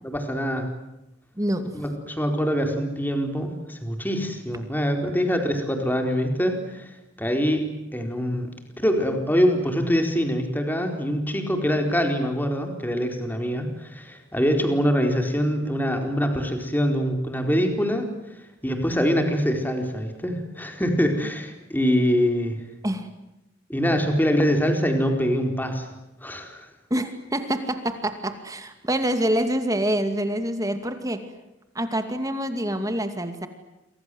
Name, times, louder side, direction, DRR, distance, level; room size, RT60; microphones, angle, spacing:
voice 1, 0.0-0.7 1.7-6.9 7.2-8.5 8.8-18.1 18.6-22.6 23.7-25.9 26.2-26.7, equal, 10° left, 4 dB, 4.3 m, -24 dB
voice 2, 1.4-1.8 22.8-23.1 26.9-31.2 31.7-33.5, right 1 dB, 20° right, 8 dB, 2.4 m, -26 dB
29.0 x 25.0 x 7.9 m, 0.92 s
head